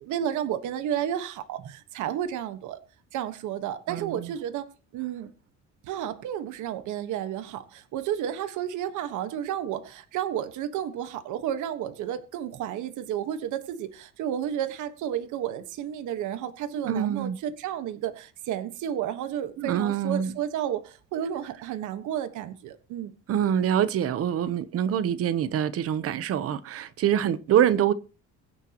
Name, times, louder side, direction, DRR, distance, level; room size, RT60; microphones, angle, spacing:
voice 1, 0.0-2.8 3.1-4.7 4.9-5.3 5.9-23.1, right 10 dB, 75° right, 1.5 m, -32 dB
voice 2, 3.9-4.3 16.7-17.4 19.6-20.4 23.3-27.9, right 9 dB, 50° right, 0.9 m, -25 dB
23.5 x 9.2 x 3.0 m
cardioid pair, 170°, 30 cm